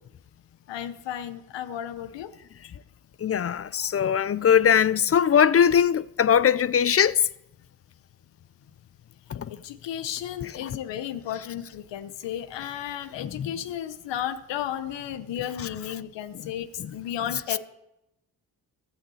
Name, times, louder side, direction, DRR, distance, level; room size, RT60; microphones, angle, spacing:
voice 1, 0.7-2.3 9.5-17.6, left 10 dB, 90° left, 0.9 m, -33 dB
voice 2, 3.2-7.2 9.3-9.5 10.6-10.7 13.2-13.5 16.8-16.9, left 8 dB, 35° left, 0.4 m, -21 dB
12.0 x 5.9 x 7.8 m
cardioid pair, 70°, 42 cm